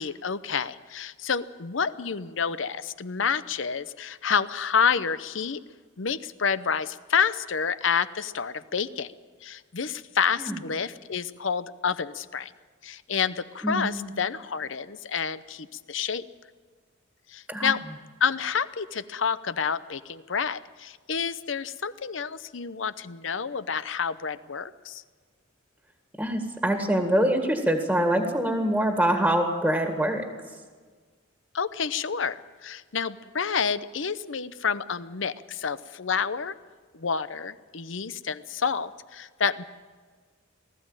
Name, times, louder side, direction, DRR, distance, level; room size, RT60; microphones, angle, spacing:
voice 1, 0.0-5.6 6.0-9.1 9.4-12.5 12.8-16.2 17.3-17.8 18.2-25.0 31.5-36.5 36.9-39.6, left 6 dB, 70° left, 14 dB, 0.8 m, -29 dB
voice 2, 13.6-14.1 17.5-17.7 26.2-30.3, right 1 dB, 5° right, 4 dB, 1.9 m, -24 dB
19.5 x 14.5 x 9.0 m, 1.5 s
head